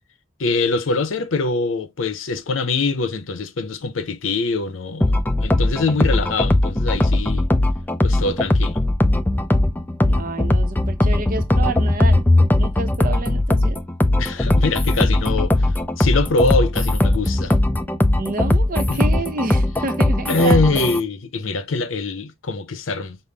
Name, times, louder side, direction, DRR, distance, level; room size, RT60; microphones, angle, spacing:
voice 1, 0.4-7.5 8.0-8.8 14.2-15.5 16.0-17.5 18.9-19.0 20.3-23.2, left 3 dB, 85° left, 0.7 m, -23 dB
sound 1, 5.0-21.0, left 1 dB, 10° left, 0.3 m, -19 dB
voice 2, 10.1-12.2 12.6-13.8 18.2-20.9, right 3 dB, 45° right, 0.6 m, -29 dB
5.6 x 2.0 x 3.3 m
head